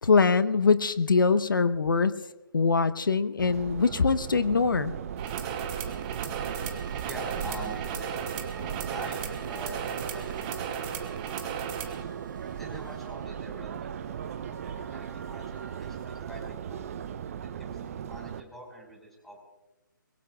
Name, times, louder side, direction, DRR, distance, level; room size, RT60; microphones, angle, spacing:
voice 1, 0.0-2.2 2.5-4.9, left 4 dB, 70° left, 13 dB, 0.9 m, -23 dB
Subway metro underground, 3.4-18.4, right 8 dB, 40° right, 0.7 m, -37 dB
sound 1, 5.2-12.0, right 8 dB, 25° right, 1.8 m, -36 dB
sound 2, 5.6-16.3, right 3 dB, 75° right, 3.8 m, -51 dB
voice 2, 7.0-11.4 12.5-14.2 14.9-16.8 17.6-19.4, right 1 dB, ahead, -1 dB, 5.0 m, -44 dB
24.0 x 22.0 x 2.3 m, 1.1 s
figure-of-eight pair, 140°, 11 cm